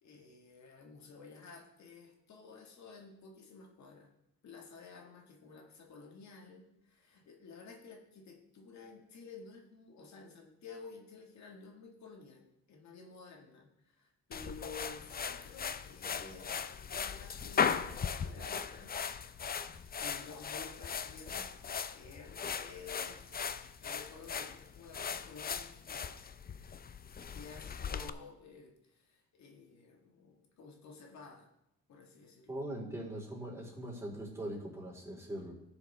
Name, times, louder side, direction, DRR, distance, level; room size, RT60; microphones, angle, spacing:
voice 1, 0.0-4.1 4.4-19.0 20.0-21.6 21.9-26.2 27.3-31.5 31.9-32.7, left 4 dB, 65° left, 1 dB, 1.8 m, -52 dB
sound 1, 14.3-28.1, left 6 dB, 30° left, 0.5 m, -38 dB
voice 2, 32.5-35.5, right 1 dB, 10° right, -4 dB, 3.9 m, -41 dB
16.0 x 6.8 x 3.4 m, 0.85 s
cardioid pair, 90°, 30 cm